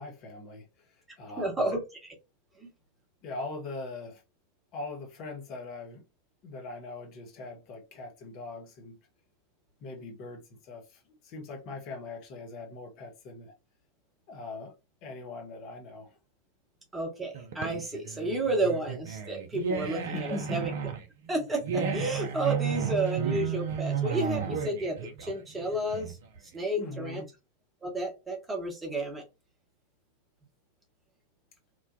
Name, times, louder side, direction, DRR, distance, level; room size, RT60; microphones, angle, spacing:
voice 1, 0.0-1.8 3.2-4.2 4.7-6.0 6.4-9.0 9.8-13.5 14.3-14.7 15.0-16.2 20.1-20.7 26.8-27.3, left 3 dB, 40° left, 0.7 m, -41 dB
voice 2, 1.4-1.8 2.6-2.7 16.9-20.7 21.3-26.2 26.5-27.2 27.8-29.2, right 2 dB, 15° right, 0.9 m, -31 dB
sound 1, 17.3-26.4, right 7 dB, 55° right, 0.5 m, -33 dB
3.0 x 2.1 x 2.5 m
figure-of-eight pair, 90°, 0 cm